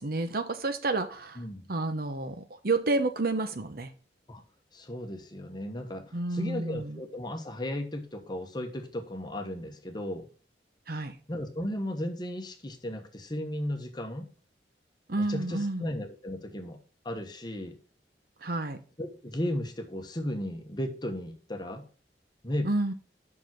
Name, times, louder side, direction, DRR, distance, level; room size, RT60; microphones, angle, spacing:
voice 1, 0.0-1.4 1.7-3.9 6.1-7.0 10.9-11.2 15.1-15.9 18.4-18.8 22.6-22.9, right 2 dB, 55° right, 9 dB, 0.9 m, -30 dB
voice 2, 1.4-1.7 4.3-4.4 4.7-10.3 11.3-14.3 15.1-16.8 17.0-17.8 19.0-21.8 22.4-22.7, left 1 dB, 25° left, 5 dB, 1.1 m, -35 dB
6.0 x 5.3 x 5.9 m, 0.39 s
head